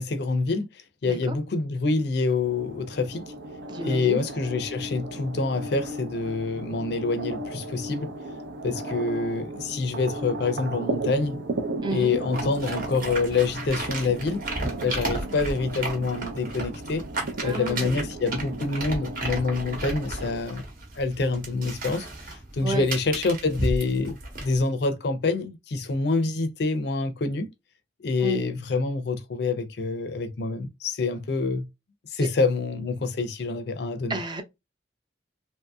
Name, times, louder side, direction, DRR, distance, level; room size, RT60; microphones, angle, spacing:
voice 1, 0.0-3.3 3.8-8.1 8.6-11.4 11.9-14.4 14.8-17.1 17.4-20.6 21.0-27.5 28.0-31.7 32.1-34.2, left 3 dB, 60° left, 0.5 m, -26 dB
voice 2, 1.1-1.4 3.7-4.2 11.8-12.1 17.4-18.0 22.6-22.9 28.2-28.5 32.2-32.3 34.1-34.4, right 2 dB, 25° right, 0.5 m, -31 dB
sound 1, 2.4-20.4, right 1 dB, 75° right, 0.6 m, -35 dB
sound 2, 12.3-24.6, right 2 dB, 50° right, 1.1 m, -34 dB
2.8 x 2.7 x 2.2 m
head